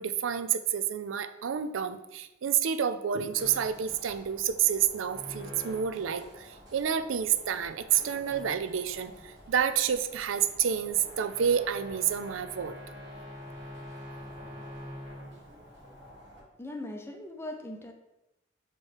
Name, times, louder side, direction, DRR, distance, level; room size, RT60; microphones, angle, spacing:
voice 1, 0.0-12.8, right 8 dB, 85° right, 11 dB, 0.4 m, -29 dB
sound 1, 3.4-16.4, equal, 60° right, 1.5 m, -46 dB
voice 2, 16.6-17.9, left 1 dB, 15° left, 4 dB, 0.6 m, -39 dB
7.4 x 3.1 x 4.7 m, 0.94 s
head